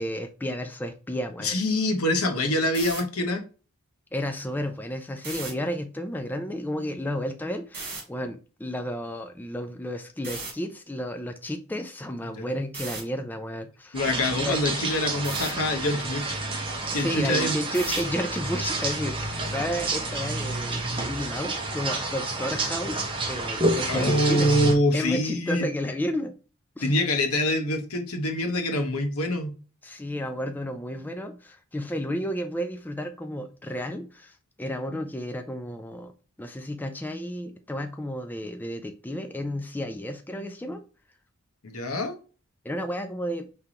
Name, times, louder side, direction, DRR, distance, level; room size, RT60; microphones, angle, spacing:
voice 1, 0.0-1.6 4.1-14.0 14.4-14.6 16.9-24.5 24.9-26.3 26.8-26.9 29.8-36.1 36.4-40.8 42.6-43.5, equal, 10° left, 6 dB, 0.4 m, -32 dB
voice 2, 1.4-3.4 12.3-12.4 13.9-16.2 16.9-17.6 23.9-25.7 26.8-29.5 41.6-42.2, left 1 dB, 75° left, 6 dB, 1.0 m, -25 dB
sound 1, 2.7-3.0 5.2-5.5 7.7-8.0 10.2-10.5 12.7-13.0 15.2-15.5 17.7-18.1, right 3 dB, 45° right, 2.0 m, -35 dB
sound 2, 13.9-24.7, right 2 dB, 25° right, 0.9 m, -29 dB
4.9 x 3.4 x 2.8 m, 0.35 s
head